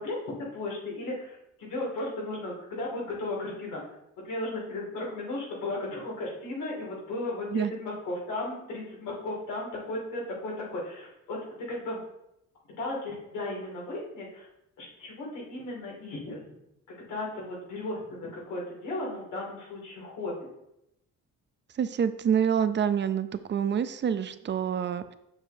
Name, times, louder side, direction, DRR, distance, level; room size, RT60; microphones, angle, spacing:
voice 1, 0.0-3.8 4.2-11.4 11.7-12.0 12.8-14.5 14.8-16.4 17.0-20.5, left 2 dB, 85° left, -4 dB, 2.3 m, -35 dB
voice 2, 21.8-25.1, right 8 dB, 40° right, 13 dB, 0.4 m, -27 dB
7.7 x 6.3 x 2.6 m, 0.83 s
cardioid pair, 90°, 30 cm